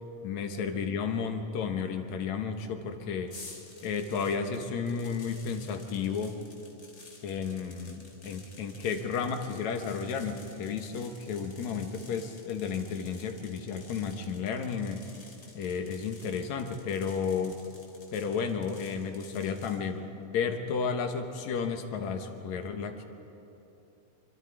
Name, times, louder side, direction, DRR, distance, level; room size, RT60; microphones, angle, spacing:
voice 1, 0.2-3.3 3.8-6.4 7.2-15.1 15.5-17.6 18.1-23.1, left 6 dB, 70° left, 6 dB, 2.4 m, -32 dB
sound 1, 3.3-19.8, left 2 dB, 25° left, 2.9 m, -52 dB
26.0 x 25.0 x 4.8 m, 2.9 s
omnidirectional pair, 3.6 m